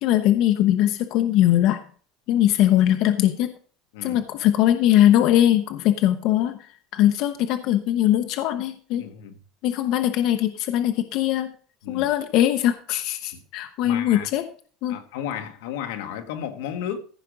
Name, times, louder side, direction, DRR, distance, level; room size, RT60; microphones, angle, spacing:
voice 1, 0.0-1.8 2.3-3.5 4.0-6.5 6.9-9.0 9.6-11.5 11.9-14.4 14.8-15.0, left 12 dB, 50° left, 0.7 m, -21 dB
voice 2, 9.0-9.4 11.8-12.1 13.3-13.4 13.8-14.3 14.9-17.0, left 9 dB, 85° left, 1.3 m, -33 dB
14.5 x 5.1 x 5.0 m
cardioid pair, 160°, 0 cm